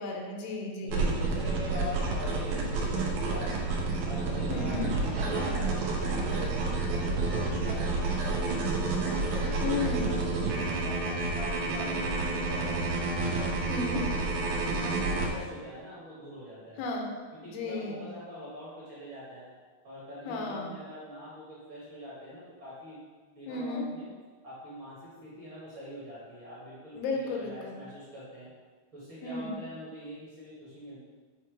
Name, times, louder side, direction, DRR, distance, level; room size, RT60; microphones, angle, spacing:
voice 1, 0.0-0.9 4.5-4.9 9.6-10.1 13.7-14.1 16.8-17.1 17.4-18.0 20.3-20.7 23.5-23.9 27.0-27.8 29.2-29.6, left 3 dB, 85° left, 1 dB, 2.8 m, -33 dB
voice 2, 0.8-3.7 4.0-8.9 9.3-12.8 13.1-16.8 17.3-19.5 19.8-23.0 23.3-24.1 24.4-28.5 28.9-31.0, equal, 45° right, -9 dB, 1.8 m, -43 dB
sound 1, 0.9-15.3, right 3 dB, 80° right, 2.7 m, -29 dB
8.0 x 3.0 x 4.7 m, 1.4 s
omnidirectional pair, 4.3 m